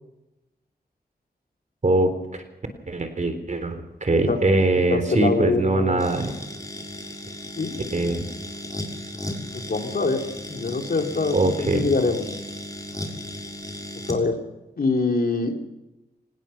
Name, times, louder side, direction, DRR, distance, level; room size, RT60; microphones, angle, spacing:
voice 1, 1.8-2.4 2.9-6.3 7.9-8.2 11.3-11.9, right 2 dB, 45° right, 8 dB, 3.7 m, -22 dB
voice 2, 4.9-6.0 7.6-8.2 9.5-12.2 14.1-14.4 14.8-15.6, left 3 dB, 60° left, 3 dB, 3.5 m, -24 dB
sound 1, 6.0-14.2, left 1 dB, 20° left, 6.1 m, -35 dB
25.0 x 20.0 x 6.0 m, 0.99 s
wide cardioid pair, 70°, 17 cm